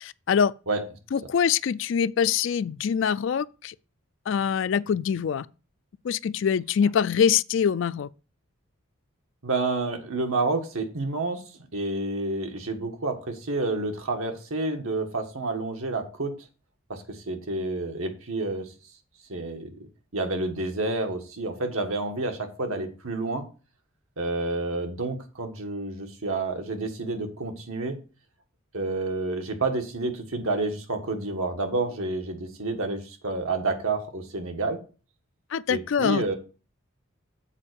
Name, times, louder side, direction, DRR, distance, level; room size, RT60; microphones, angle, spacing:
voice 1, 0.0-0.5 1.1-3.7 4.3-5.5 6.0-8.1 35.5-36.3, left 7 dB, 60° left, 0.3 m, -24 dB
voice 2, 9.4-11.4 11.7-16.3 16.9-18.7 19.3-19.8 20.1-23.4 24.2-28.0 28.7-34.8 35.7-36.4, right 3 dB, 75° right, 1.5 m, -29 dB
7.3 x 4.4 x 6.8 m
head